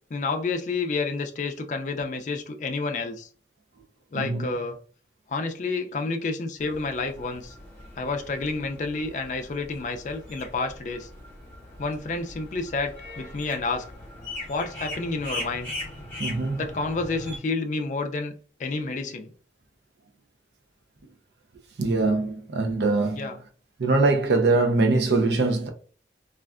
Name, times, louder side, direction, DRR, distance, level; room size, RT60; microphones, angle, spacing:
voice 1, 0.1-3.3 4.1-4.8 5.3-7.5 8.0-11.1 11.8-13.9 14.5-15.7 16.6-18.3 18.6-19.3 23.1-23.4, left 3 dB, 45° left, 0.4 m, -29 dB
voice 2, 4.1-4.5 16.2-16.6 21.8-23.3 23.8-25.7, right 3 dB, 75° right, 0.5 m, -22 dB
sound 1, 6.6-17.4, left 1 dB, 10° left, 1.2 m, -40 dB
3.2 x 2.4 x 2.4 m
head